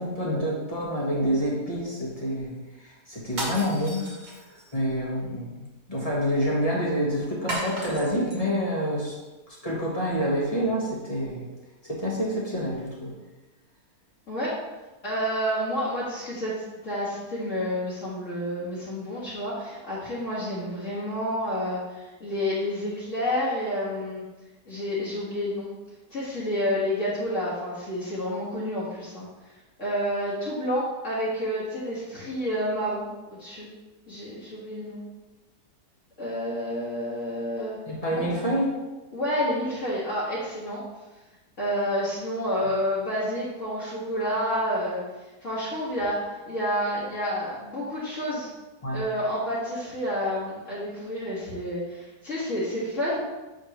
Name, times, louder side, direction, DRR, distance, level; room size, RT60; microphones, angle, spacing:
voice 1, 0.0-2.5 2.8-4.0 4.5-9.1 9.6-11.5 11.8-13.1 37.9-38.8 48.8-49.0, equal, 25° left, -6 dB, 1.3 m, -27 dB
sound 1, 3.3-4.8 7.5-8.4, right 1 dB, 40° right, 1.6 m, -34 dB
voice 2, 15.0-24.2 24.7-25.7 26.1-29.3 29.8-33.1 33.4-33.7 34.1-35.0 36.2-37.8 38.1-38.3 39.1-40.8 41.6-45.0 45.4-48.5 48.9-53.2, equal, 50° left, -9 dB, 1.9 m, -29 dB
6.5 x 5.0 x 3.0 m, 1.1 s
omnidirectional pair, 1.8 m